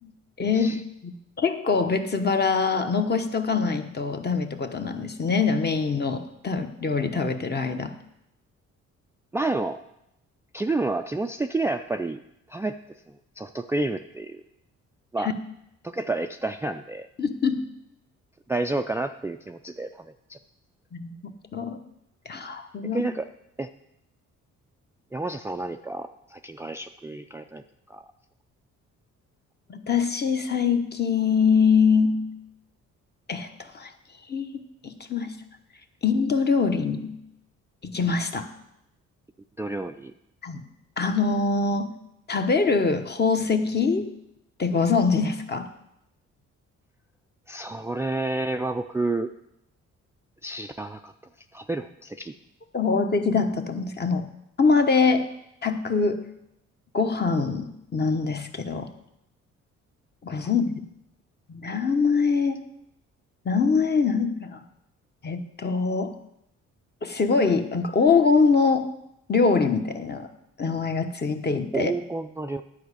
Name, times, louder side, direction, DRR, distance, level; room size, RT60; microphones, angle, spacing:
voice 1, 0.4-0.7 1.0-7.9 15.2-15.3 17.2-17.7 20.9-21.8 22.2-23.0 29.7-32.3 33.3-33.9 34.3-35.4 36.0-37.2 37.8-38.5 40.4-40.7 41.0-42.0 42.3-44.1 44.6-45.7 52.7-54.3 54.6-55.3 55.6-56.2 56.9-58.9 60.2-60.8 61.5-62.7 63.4-64.6 65.2-66.2 67.0-68.9 69.3-70.3 70.6-71.9, left 5 dB, 35° left, 6 dB, 1.1 m, -24 dB
voice 2, 9.3-9.8 10.5-12.2 12.5-12.8 13.4-14.4 15.1-15.3 15.8-17.1 18.5-20.4 22.9-23.2 23.6-23.7 25.1-27.6 27.9-28.0 39.6-40.1 47.5-49.3 50.4-51.1 51.5-52.3 71.7-72.6, right 2 dB, 10° right, 6 dB, 0.4 m, -30 dB
10.5 x 5.0 x 8.2 m, 0.82 s
cardioid pair, 90°, 30 cm